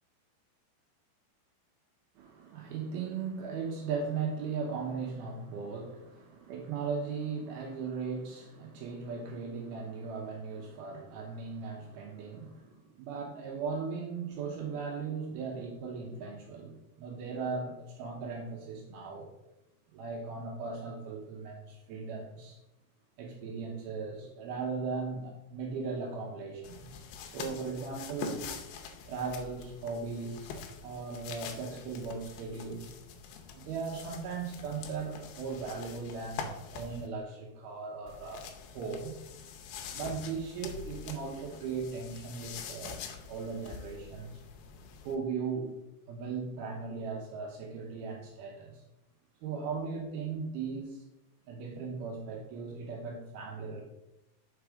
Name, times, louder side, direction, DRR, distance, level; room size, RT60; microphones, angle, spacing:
voice 1, 2.2-19.3 19.9-22.6 23.2-28.5 29.1-30.5 30.8-32.9 33.5-39.2 39.9-43.0 43.3-44.3 45.0-45.7 46.1-48.8 49.4-51.0 51.5-53.8, right 5 dB, 75° right, -1 dB, 2.7 m, -38 dB
sound 1, 26.6-37.1 38.1-45.1, left 6 dB, 80° left, 2.5 m, -45 dB
5.9 x 4.7 x 4.9 m, 0.91 s
omnidirectional pair, 4.7 m